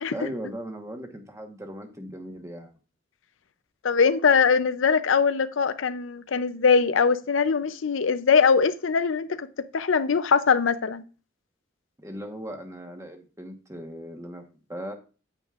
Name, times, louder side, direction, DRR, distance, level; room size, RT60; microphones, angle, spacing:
voice 1, 0.1-2.7 12.0-14.4 14.7-14.9, equal, 15° right, 1.2 m, -38 dB
voice 2, 3.8-9.5 9.7-11.0, left 5 dB, 90° left, 0.6 m, -22 dB
9.0 x 8.9 x 2.5 m
head